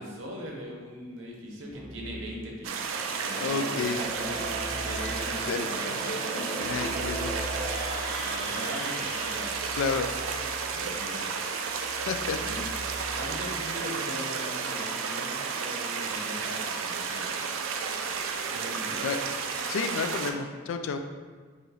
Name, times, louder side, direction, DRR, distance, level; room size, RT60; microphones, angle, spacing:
voice 1, 0.0-2.9 3.2-4.4 4.8-6.0 6.6-6.9 8.2-9.5 10.7-11.3 12.3-12.6 13.1-17.3 18.5-19.0, equal, 70° right, -1 dB, 0.7 m, -40 dB
Keyboard (musical), 1.7-2.3 3.8-5.4 6.6-13.6, equal, 10° right, 0.3 m, -43 dB
sound 1, 2.6-20.3, right 5 dB, 85° right, 0.3 m, -32 dB
sound 2, 3.2-9.9, right 1 dB, 40° left, 1.1 m, -37 dB
voice 2, 3.4-4.0 5.5-5.7 6.6-7.5 9.8-10.1 12.1-12.7 19.0-19.2 19.7-21.0, left 5 dB, 75° left, 7 dB, 0.3 m, -31 dB
3.8 x 3.0 x 2.8 m, 1.5 s
head